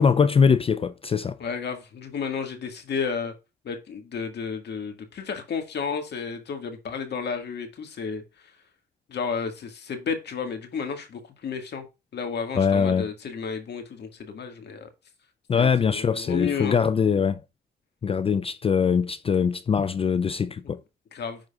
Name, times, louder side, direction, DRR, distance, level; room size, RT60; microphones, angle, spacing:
voice 1, 0.0-1.4 12.6-13.1 15.5-17.4 18.0-20.8, left 6 dB, 30° left, 0.4 m, -22 dB
voice 2, 1.4-3.3 3.6-8.5 9.1-11.9 12.1-14.9 15.5-16.8 21.1-21.4, left 5 dB, 60° left, 1.8 m, -32 dB
10.5 x 3.8 x 2.4 m
cardioid pair, 90°, 20 cm